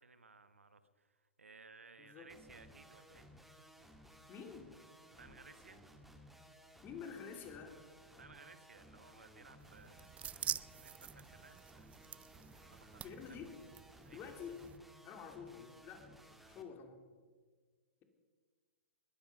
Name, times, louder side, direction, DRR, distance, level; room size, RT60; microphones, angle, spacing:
voice 1, 0.0-3.3 5.2-5.8 8.2-11.9 12.6-13.4 14.0-14.3, right 4 dB, 80° right, 12 dB, 1.2 m, -60 dB
voice 2, 2.0-2.3 4.3-4.7 6.8-7.8 13.0-13.5 14.1-14.6 15.0-16.1 16.5-17.0, left 6 dB, 30° left, 5 dB, 2.7 m, -49 dB
sound 1, 2.3-16.6, equal, ahead, 1.6 m, -60 dB
sound 2, 9.6-14.8, right 9 dB, 20° right, 0.4 m, -47 dB
21.0 x 10.5 x 5.4 m, 1.5 s
figure-of-eight pair, 110°, 7 cm